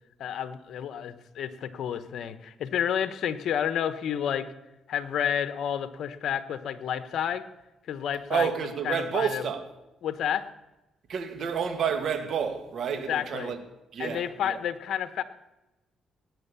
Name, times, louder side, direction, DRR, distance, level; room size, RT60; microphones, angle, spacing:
voice 1, 0.2-4.5 4.9-7.4 7.9-8.5 8.8-9.4 10.0-10.5 12.9-13.5 14.0-15.2, left 9 dB, 70° left, 1.0 m, -30 dB
voice 2, 8.3-9.6 11.1-13.6 13.9-14.6, right 7 dB, 60° right, 2.2 m, -29 dB
18.5 x 9.4 x 6.9 m
cardioid pair, 90°, 0 cm